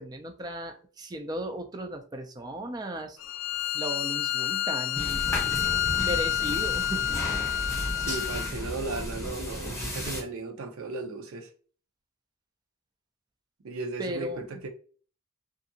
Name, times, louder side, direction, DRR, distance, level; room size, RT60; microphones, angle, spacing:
voice 1, 0.0-3.2 3.7-7.1 7.6-7.8 14.0-14.5, right 1 dB, 20° right, 0.4 m, -36 dB
Bowed string instrument, 3.2-8.6, left 11 dB, 60° left, 0.3 m, -29 dB
sound 1, 4.9-10.2, equal, 15° left, 0.9 m, -34 dB
voice 2, 7.7-11.5 13.6-14.7, right 3 dB, 70° right, 0.6 m, -36 dB
2.7 x 2.4 x 2.7 m
head